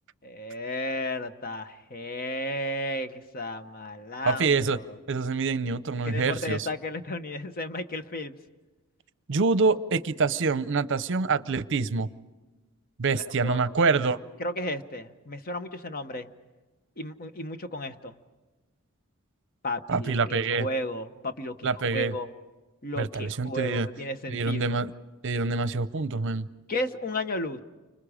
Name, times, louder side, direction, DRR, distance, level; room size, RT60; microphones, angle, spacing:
voice 1, 0.2-4.8 6.0-8.4 13.4-13.7 14.4-16.3 17.0-18.1 19.6-22.3 22.8-24.8 26.7-27.6, left 1 dB, 45° left, 9 dB, 1.0 m, -33 dB
voice 2, 4.2-4.8 5.1-6.7 9.3-12.1 13.0-14.2 19.9-20.7 21.6-22.1 23.0-23.9 24.3-24.9 25.2-26.5, right 4 dB, 60° right, 15 dB, 0.7 m, -26 dB
30.0 x 25.5 x 5.0 m, 1.2 s
head